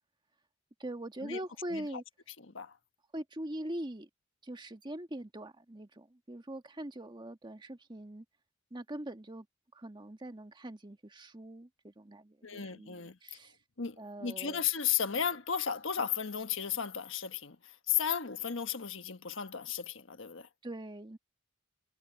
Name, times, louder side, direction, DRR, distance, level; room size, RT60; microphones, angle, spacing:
voice 1, 0.8-2.0 3.1-4.1 4.4-8.2 8.7-9.5 9.7-13.6 14.0-14.6 20.6-21.2, right 1 dB, 25° right, 1.5 m, -42 dB
voice 2, 12.4-13.2 13.8-17.6 17.9-20.5, left 8 dB, 70° left, 1.4 m, -34 dB
head